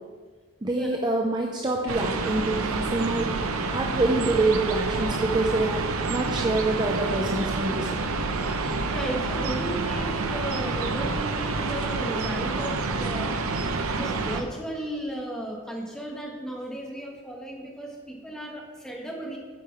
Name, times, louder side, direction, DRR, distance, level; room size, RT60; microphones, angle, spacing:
voice 1, 0.6-3.4 3.7-8.0, right 2 dB, 20° right, 1 dB, 0.5 m, -26 dB
sound 1, 1.9-14.4, right 3 dB, 70° right, 0.7 m, -28 dB
voice 2, 8.8-13.4 13.9-19.4, right 1 dB, 5° left, -1 dB, 1.3 m, -35 dB
9.2 x 5.2 x 5.8 m, 1.5 s
head